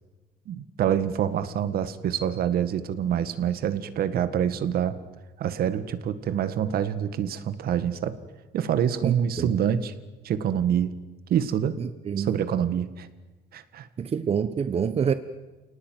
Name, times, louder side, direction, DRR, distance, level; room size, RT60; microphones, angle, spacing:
voice 1, 0.5-5.0 5.4-8.2 8.5-9.9 10.2-11.0 11.3-11.8 12.2-13.1 13.5-13.9, right 9 dB, 65° right, 1.8 m, -26 dB
voice 2, 9.0-9.5 11.8-12.4 14.0-15.1, right 7 dB, 35° right, 1.1 m, -27 dB
27.0 x 18.5 x 9.4 m
cardioid pair, 110°, 17 cm